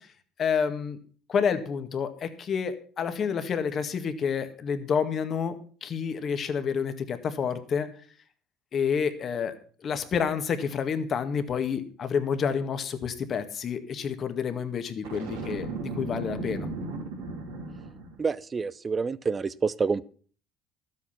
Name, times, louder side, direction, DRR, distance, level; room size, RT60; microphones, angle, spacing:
voice 1, 0.4-1.0 1.3-7.9 8.7-9.5 9.8-16.7, left 6 dB, 45° left, 9 dB, 1.8 m, -29 dB
Boom, 15.0-18.2, right 3 dB, 90° right, 3.9 m, -36 dB
voice 2, 18.2-20.0, right 5 dB, 30° right, 18 dB, 0.7 m, -28 dB
12.5 x 8.4 x 5.8 m, 0.43 s
hypercardioid pair, 75°, 0 cm